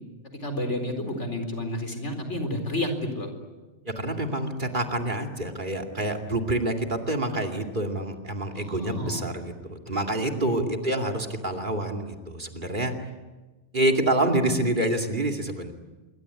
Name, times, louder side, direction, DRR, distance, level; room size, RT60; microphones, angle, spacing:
voice 1, 0.4-3.3 8.5-9.3 10.2-10.7, left 1 dB, 80° left, 6 dB, 4.7 m, -31 dB
voice 2, 4.0-12.9 13.7-15.7, right 1 dB, 45° right, 4 dB, 2.7 m, -27 dB
26.0 x 23.5 x 9.7 m, 1.2 s
omnidirectional pair, 1.2 m